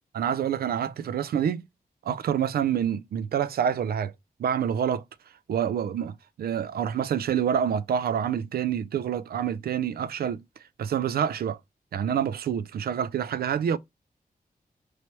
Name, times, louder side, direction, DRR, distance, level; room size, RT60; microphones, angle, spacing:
voice 1, 0.1-1.6 2.1-4.1 4.4-5.0 5.5-10.4 10.8-11.6 11.9-13.8, right 8 dB, 85° right, 0.4 m, -27 dB
4.6 x 2.8 x 3.1 m
wide cardioid pair, 105°, 15 cm